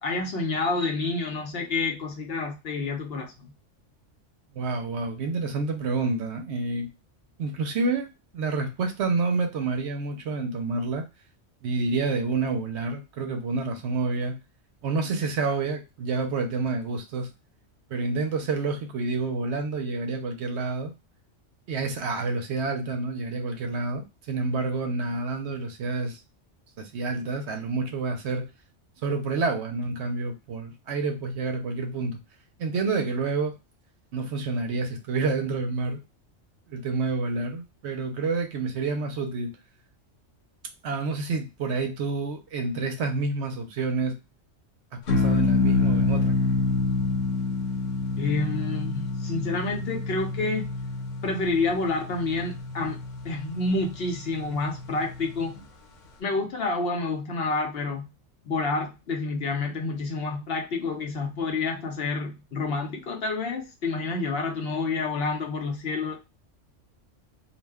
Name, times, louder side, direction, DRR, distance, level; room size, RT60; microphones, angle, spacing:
voice 1, 0.0-3.5 48.2-50.7 51.2-53.0 53.2-55.6 56.2-58.1 58.4-66.2, left 3 dB, 60° left, 0.8 m, -29 dB
voice 2, 4.5-6.9 7.4-11.1 11.6-14.4 14.8-17.3 17.9-20.9 21.7-26.2 26.8-28.5 29.0-32.2 32.6-33.5 34.1-36.0 36.7-39.5 40.8-44.2 44.9-46.4, right 3 dB, 70° right, 0.8 m, -28 dB
sound 1, 45.1-55.6, left 3 dB, 85° left, 1.0 m, -28 dB
2.4 x 2.1 x 3.4 m
omnidirectional pair, 1.3 m